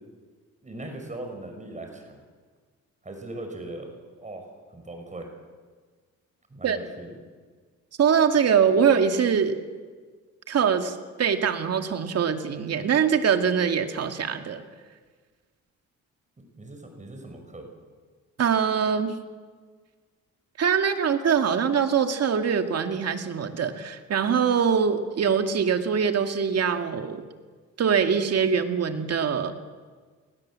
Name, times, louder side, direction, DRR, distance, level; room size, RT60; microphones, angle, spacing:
voice 1, 0.6-2.2 3.0-3.9 4.2-5.3 6.5-7.1 16.4-17.7, right 2 dB, 25° right, 4 dB, 5.7 m, -39 dB
voice 2, 8.0-9.6 10.5-14.6 18.4-19.2 20.6-27.2 27.8-29.5, right 7 dB, 55° right, 6 dB, 2.3 m, -23 dB
29.0 x 20.0 x 7.7 m, 1.5 s
cardioid pair, 90°, 30 cm